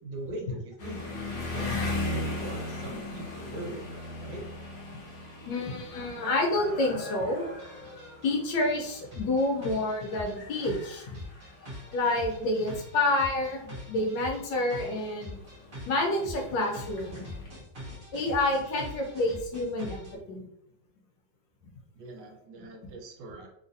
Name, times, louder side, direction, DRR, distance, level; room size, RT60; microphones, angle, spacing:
voice 1, 0.0-4.4 21.9-23.5, right 2 dB, 70° right, 1 dB, 1.2 m, -41 dB
sound 1, 0.8-17.5, left 2 dB, 55° left, 1.3 m, -39 dB
voice 2, 5.5-7.4 8.2-11.2 11.9-15.4 15.9-17.3 18.1-20.4 22.6-22.7, left 2 dB, 80° left, 1 dB, 1.4 m, -28 dB
sound 2, 7.6-20.1, left 1 dB, 35° right, 1.0 m, -44 dB
3.7 x 2.5 x 2.6 m, 0.77 s
omnidirectional pair, 2.0 m